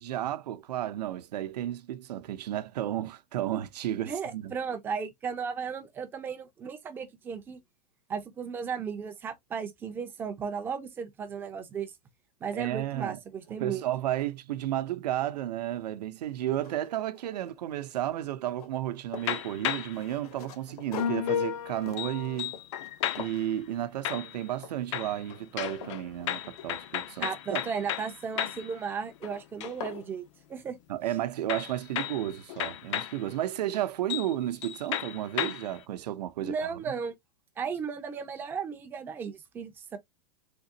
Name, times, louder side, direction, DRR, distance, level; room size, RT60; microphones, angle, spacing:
voice 1, 0.0-4.6 12.5-13.2 13.6-22.5 23.2-27.6 30.9-36.8, right 12 dB, 85° right, 0.6 m, -33 dB
voice 2, 4.1-7.6 8.1-11.9 12.4-13.8 27.2-30.2 30.5-30.8 36.4-37.1 37.6-40.0, right 6 dB, 10° right, 0.4 m, -35 dB
sound 1, 15.7-15.8 16.3-17.7 18.0-19.4 19.9-22.9 23.2-23.5 24.1-24.3 24.6-25.0 25.4-27.0 28.4-28.8 29.3-29.4 29.6-30.0, left 7 dB, 70° left, 0.9 m, -45 dB
sound 2, 19.2-20.1 21.0-23.5 24.0-24.6 24.9-28.7 29.1-30.0 31.5-33.2 33.7-33.8 34.1-34.3 34.6-35.8, left 10 dB, 50° left, 0.4 m, -34 dB
3.6 x 2.9 x 2.6 m
supercardioid pair, 165°, 20 cm